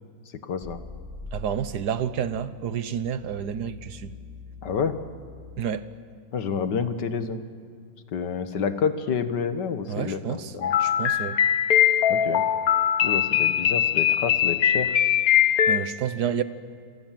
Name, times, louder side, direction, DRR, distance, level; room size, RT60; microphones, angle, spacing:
voice 1, 0.4-0.8 4.6-4.9 6.3-7.4 8.1-10.7 12.1-12.4 13.0-15.0, left 6 dB, 75° left, 2.0 m, -29 dB
sound 1, 0.6-5.6, left 2 dB, ahead, 3.5 m, -44 dB
voice 2, 1.3-4.1 5.6-5.9 9.9-10.5 10.8-11.4 15.7-16.4, right 8 dB, 65° right, 1.6 m, -29 dB
sound 2, 10.6-15.8, left 10 dB, 60° left, 1.4 m, -21 dB
29.0 x 26.5 x 7.6 m
omnidirectional pair, 1.9 m